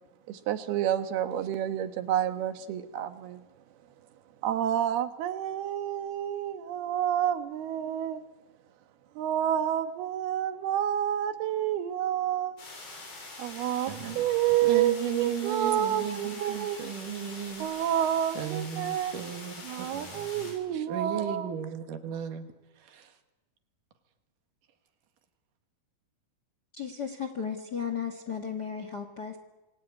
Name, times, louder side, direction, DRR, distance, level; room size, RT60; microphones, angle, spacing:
voice 1, 0.3-3.4 4.4-8.2 9.2-12.6 13.4-16.8 17.6-19.1 19.6-21.5, right 10 dB, 80° right, 9 dB, 3.2 m, -29 dB
sound 1, 12.6-20.5, left 2 dB, 85° left, 8.7 m, -44 dB
voice 2, 13.9-14.3 14.6-17.9 18.3-20.3 20.9-22.5 22.9-23.1, right 9 dB, 60° right, 7 dB, 3.1 m, -35 dB
voice 3, 26.7-29.4, left 7 dB, 60° left, 7 dB, 1.0 m, -35 dB
26.5 x 20.0 x 9.6 m, 1.1 s
omnidirectional pair, 4.5 m